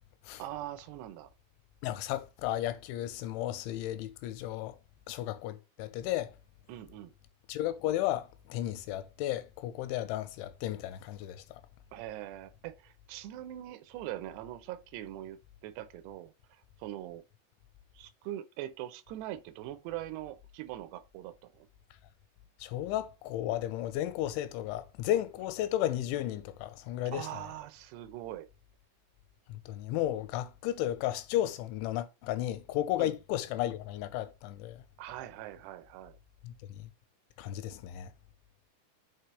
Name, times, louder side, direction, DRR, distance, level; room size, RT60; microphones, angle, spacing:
voice 1, 0.4-1.3 6.7-7.1 11.9-16.3 16.8-17.2 18.0-21.7 27.1-28.5 33.0-33.1 35.0-36.2, right 13 dB, 80° right, 2.6 m, -42 dB
voice 2, 1.8-4.8 5.1-6.3 7.5-11.4 22.6-27.3 29.7-34.8 36.4-36.5 37.4-38.1, left 13 dB, 85° left, 3.0 m, -33 dB
6.7 x 4.5 x 3.2 m
omnidirectional pair, 5.4 m